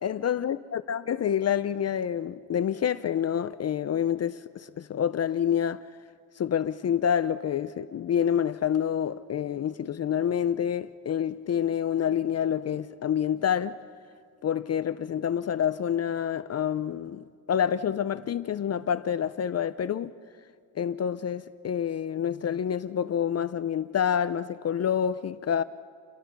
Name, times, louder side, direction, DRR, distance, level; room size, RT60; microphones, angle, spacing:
voice 1, 0.0-5.8 6.4-13.8 14.4-20.1 20.8-25.6, left 9 dB, 40° left, 0.5 m, -27 dB
29.0 x 22.5 x 6.0 m
cardioid pair, 140°, 40 cm